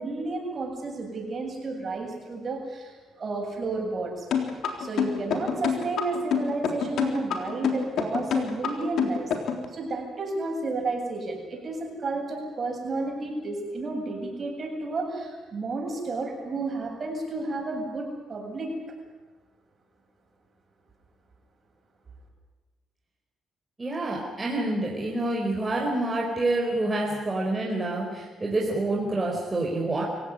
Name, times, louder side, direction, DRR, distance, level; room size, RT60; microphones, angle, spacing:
voice 1, 0.0-4.3 4.8-9.3 9.7-18.7, right 3 dB, 40° right, 2 dB, 7.4 m, -32 dB
sound 1, 4.3-9.6, left 7 dB, 70° left, 3.7 m, -26 dB
voice 2, 23.8-30.0, right 2 dB, 20° right, -2 dB, 4.9 m, -27 dB
25.5 x 16.5 x 9.6 m, 1.3 s
cardioid pair, 90°, 0 cm